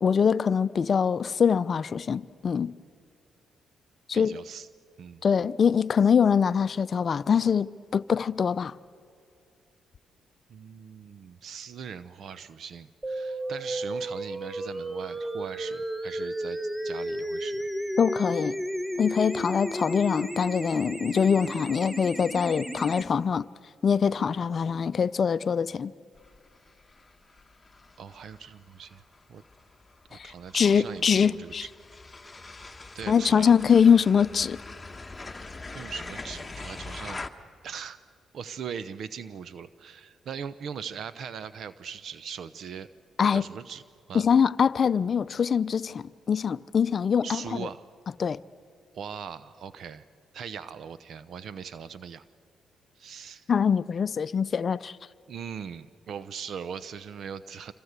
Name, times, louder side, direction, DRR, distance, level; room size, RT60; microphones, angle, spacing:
voice 1, 0.0-2.7 4.1-4.4 5.2-8.7 18.0-18.6 19.0-23.4 23.8-25.9 30.1-31.7 33.1-34.6 43.2-43.5 44.1-47.7 48.2-48.4 53.5-55.0, left 7 dB, 50° left, 0.6 m, -23 dB
voice 2, 4.1-4.7 5.0-5.2 10.5-16.6 16.8-17.6 28.0-29.0 29.3-29.4 30.1-31.7 32.9-33.5 35.7-37.3 37.6-38.0 38.3-42.9 43.3-43.8 44.1-44.3 47.2-47.8 48.9-50.1 50.3-52.2 53.0-53.5 55.3-57.7, right 7 dB, 65° right, 0.7 m, -40 dB
sound 1, 13.0-23.0, right 1 dB, 15° right, 1.2 m, -33 dB
sound 2, 26.2-37.3, left 3 dB, 20° left, 1.4 m, -43 dB
27.0 x 25.0 x 8.1 m
supercardioid pair, 70°, 0 cm